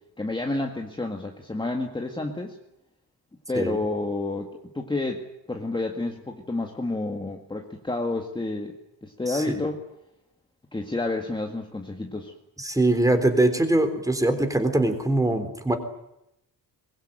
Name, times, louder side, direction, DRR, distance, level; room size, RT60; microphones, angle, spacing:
voice 1, 0.2-2.6 3.5-9.8 10.7-12.3, left 2 dB, 10° left, 2 dB, 2.0 m, -30 dB
voice 2, 9.3-9.6 12.6-15.8, right 1 dB, 10° right, 8 dB, 3.7 m, -22 dB
23.5 x 21.5 x 9.1 m, 0.85 s
wide cardioid pair, 165°, 41 cm